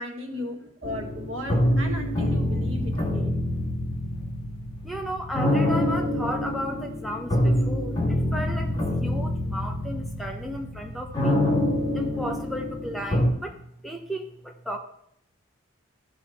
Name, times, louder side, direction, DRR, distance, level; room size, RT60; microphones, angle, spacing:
voice 1, 0.0-3.3, left 1 dB, 80° right, 3 dB, 1.7 m, -36 dB
sound 1, 0.8-13.3, left 1 dB, 20° left, 2.0 m, -26 dB
voice 2, 4.8-11.4 11.9-13.6 13.8-14.8, equal, ahead, 2 dB, 0.8 m, -34 dB
14.0 x 5.7 x 4.2 m, 0.72 s
head